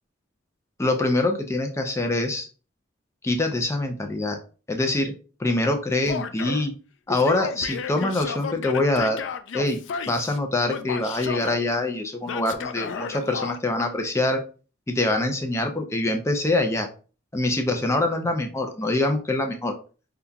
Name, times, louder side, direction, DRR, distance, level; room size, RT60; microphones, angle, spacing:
voice 1, 0.8-2.5 3.2-4.4 4.7-5.1 5.4-6.7 7.1-9.2 9.5-9.8 10.1-14.4 14.9-16.9 17.3-19.8, left 2 dB, 15° left, 4 dB, 0.5 m, -24 dB
Male speech man speaking / Yell, 6.1-6.7 7.1-10.4 10.7-11.6 12.3-13.6, left 6 dB, 75° left, 0.4 m, -33 dB
5.4 x 2.3 x 2.3 m, 0.36 s
head